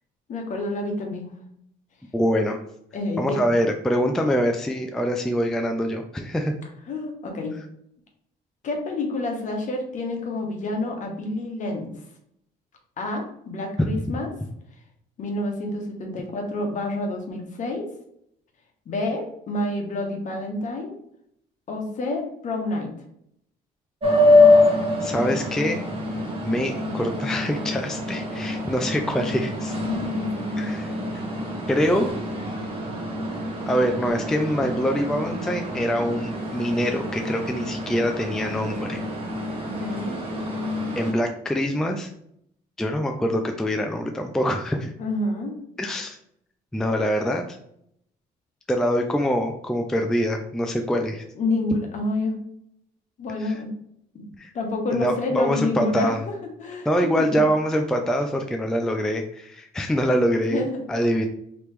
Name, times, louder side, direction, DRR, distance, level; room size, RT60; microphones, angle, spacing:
voice 1, 0.3-1.3 2.9-3.5 6.9-7.6 8.6-11.9 13.0-14.3 15.2-17.9 18.9-20.9 21.7-22.9 29.8-30.8 39.8-40.2 45.0-45.6 51.3-52.4 53.2-53.7 54.1-54.3 54.5-56.1 56.6-56.9 57.2-57.5 60.4-60.8, left 2 dB, 50° left, 2 dB, 1.1 m, -28 dB
voice 2, 2.1-2.6 3.2-6.5 13.8-13.9 25.0-25.8 26.4-29.7 30.6-30.9 31.7-32.1 33.7-39.0 41.0-42.1 42.8-44.9 45.8-46.2 46.7-47.4 48.7-51.2 53.4-53.6 54.4-54.5 54.9-56.2 56.9-61.2, equal, 5° left, 4 dB, 0.3 m, -24 dB
sound 1, 24.0-41.1, left 2 dB, 35° right, 1.2 m, -25 dB
3.0 x 2.9 x 3.3 m, 0.73 s
cardioid pair, 110°, 17 cm